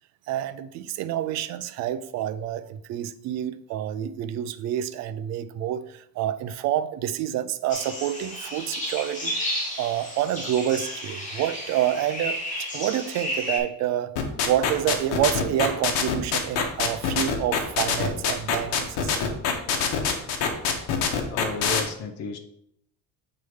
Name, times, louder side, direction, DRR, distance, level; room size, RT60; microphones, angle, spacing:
voice 1, 0.3-9.4 9.8-14.2 14.4-19.3, right 11 dB, 50° right, 13 dB, 0.5 m, -28 dB
sound 1, 7.7-13.6, left 1 dB, 20° left, 1.7 m, -32 dB
sound 2, 14.2-21.8, left 7 dB, 75° left, 1.3 m, -24 dB
voice 2, 21.3-22.4, left 3 dB, 40° left, 7 dB, 0.9 m, -33 dB
7.7 x 3.8 x 4.8 m, 0.73 s
cardioid pair, 165°, 37 cm